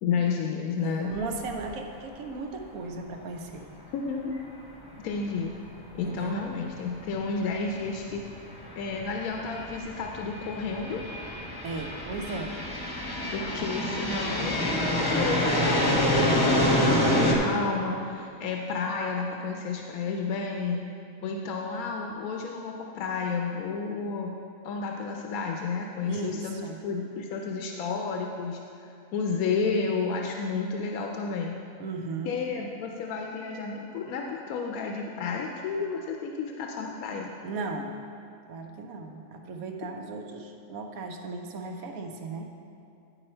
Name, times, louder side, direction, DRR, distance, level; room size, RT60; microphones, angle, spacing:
voice 1, 0.0-1.1 3.9-4.3 5.0-5.5 5.9-8.2 8.8-11.0 13.3-20.8 21.2-24.4 24.6-28.6 29.1-31.6 32.2-37.3, left 5 dB, 85° left, 1 dB, 1.1 m, -31 dB
voice 2, 0.8-3.7 6.0-6.4 11.6-12.6 26.0-26.8 31.8-32.4 37.4-38.0 38.5-42.5, right 3 dB, 85° right, 4 dB, 1.1 m, -36 dB
sound 1, 1.2-1.3 1.6-1.7 5.8-5.9 7.0-7.1 7.8-17.4, left 1 dB, 20° left, 0.8 m, -27 dB
10.0 x 4.9 x 4.3 m, 2.6 s
omnidirectional pair, 1.5 m